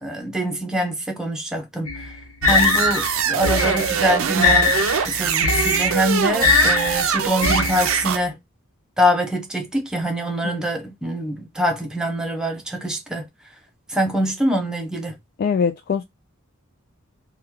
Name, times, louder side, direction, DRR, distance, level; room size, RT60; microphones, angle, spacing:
voice 1, 0.0-1.9 2.4-4.7 5.0-8.4 9.0-13.3 13.9-15.2, equal, 5° right, 0.7 m, -24 dB
sound 1, 1.9-8.2, left 5 dB, 75° left, 0.8 m, -22 dB
sound 2, 2.4-8.2, right 7 dB, 70° right, 0.5 m, -23 dB
voice 2, 15.4-16.0, left 6 dB, 45° left, 0.3 m, -23 dB
3.0 x 2.2 x 3.6 m
head